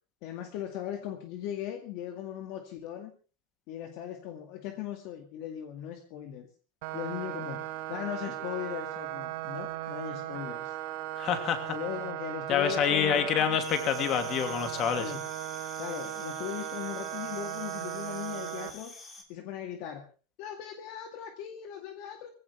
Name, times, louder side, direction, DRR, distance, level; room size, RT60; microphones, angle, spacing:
voice 1, 0.2-3.2 3.7-6.5 6.9-10.8 11.7-13.7 15.0-15.3 15.8-19.0 19.3-20.1 20.4-22.3, left 10 dB, 50° left, 5 dB, 2.1 m, -38 dB
sound 1, 6.8-18.7, right 13 dB, 60° right, 2.0 m, -37 dB
voice 2, 11.2-11.7 12.5-15.0, left 8 dB, 35° left, 7 dB, 2.9 m, -27 dB
sound 2, 13.6-19.2, left 3 dB, 15° left, 3.2 m, -48 dB
21.0 x 16.5 x 3.4 m, 0.36 s
supercardioid pair, 160°, 0 cm